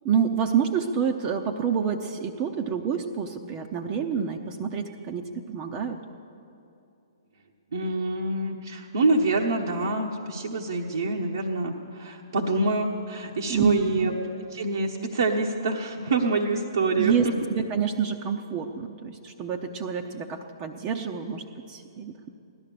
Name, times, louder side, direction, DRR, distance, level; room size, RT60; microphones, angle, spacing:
voice 1, 0.0-6.0 13.5-14.1 17.0-22.3, right 7 dB, 30° right, 3 dB, 0.8 m, -28 dB
voice 2, 7.7-14.1 14.5-17.3, right 2 dB, 65° right, -2 dB, 1.2 m, -26 dB
16.5 x 12.0 x 6.8 m, 2.6 s
figure-of-eight pair, 125°, 2 cm